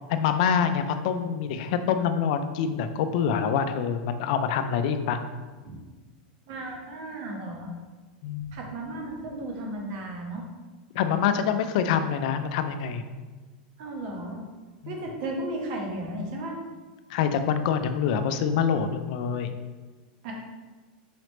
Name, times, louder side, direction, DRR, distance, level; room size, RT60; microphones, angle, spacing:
voice 1, 0.1-5.2 8.2-8.6 10.9-13.0 14.8-15.0 17.1-19.5, left 7 dB, 60° left, 9 dB, 0.4 m, -26 dB
voice 2, 6.5-7.7 8.5-10.4 13.8-14.4 14.9-16.6 20.2-20.3, right 1 dB, 55° right, 1 dB, 0.9 m, -34 dB
4.9 x 3.1 x 3.1 m, 1.3 s
supercardioid pair, 150°, 5 cm